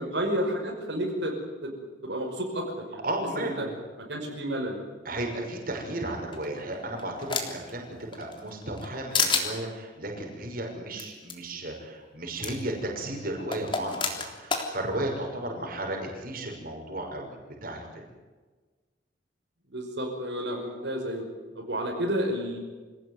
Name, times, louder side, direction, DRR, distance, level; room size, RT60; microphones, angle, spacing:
voice 1, 0.0-1.3 1.6-1.7 2.0-3.0 3.4-3.7 4.1-4.8 19.7-21.3 21.6-22.6, equal, 65° right, -1 dB, 5.5 m, -31 dB
voice 2, 3.0-3.7 5.0-18.1, right 1 dB, 50° right, 1 dB, 6.1 m, -34 dB
sound 1, 6.3-7.7 8.1-8.9 9.1-9.5 11.0-11.1 11.3-11.4 12.4-12.5 13.5-14.7, left 5 dB, 25° left, 3.5 m, -28 dB
27.0 x 18.0 x 9.7 m, 1.4 s
head